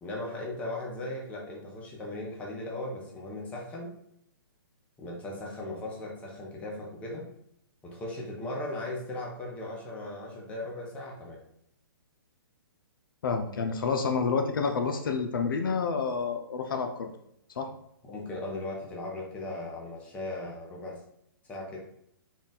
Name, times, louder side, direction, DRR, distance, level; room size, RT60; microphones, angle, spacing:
voice 1, 0.0-3.9 5.0-7.3 7.8-11.4 18.1-21.0 21.4-21.8, left 1 dB, 10° left, -2 dB, 0.7 m, -37 dB
voice 2, 13.2-17.1 17.6-17.7, left 5 dB, 70° left, 5 dB, 0.5 m, -29 dB
4.0 x 2.3 x 4.0 m, 0.74 s
hypercardioid pair, 155°, 12 cm